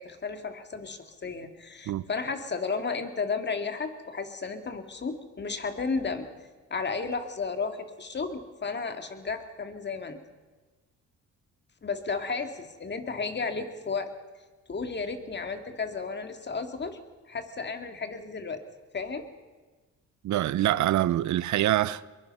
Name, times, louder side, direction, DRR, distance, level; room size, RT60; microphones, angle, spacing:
voice 1, 0.0-6.3 6.7-10.2 11.8-14.1 14.7-17.0 17.3-18.6 18.9-19.3, left 4 dB, 35° left, 2.2 m, -33 dB
voice 2, 20.2-22.1, right 13 dB, 70° right, 0.7 m, -25 dB
22.5 x 21.0 x 5.5 m
cardioid pair, 90°, 30 cm